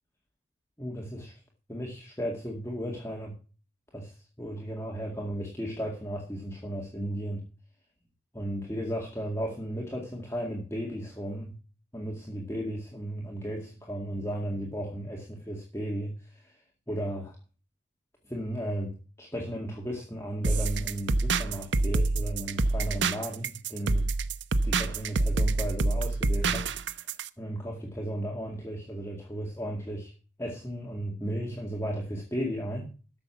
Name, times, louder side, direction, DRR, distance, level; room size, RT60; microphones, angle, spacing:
voice 1, 0.8-1.4 1.7-3.3 3.9-7.4 8.3-11.5 11.9-16.6 16.9-17.4 18.3-24.1 24.6-26.7 27.4-30.1 30.4-32.9, equal, 15° left, -1 dB, 2.0 m, -35 dB
sound 1, 20.4-27.3, right 3 dB, 80° right, 0.7 m, -27 dB
12.5 x 6.8 x 7.0 m, 0.36 s
head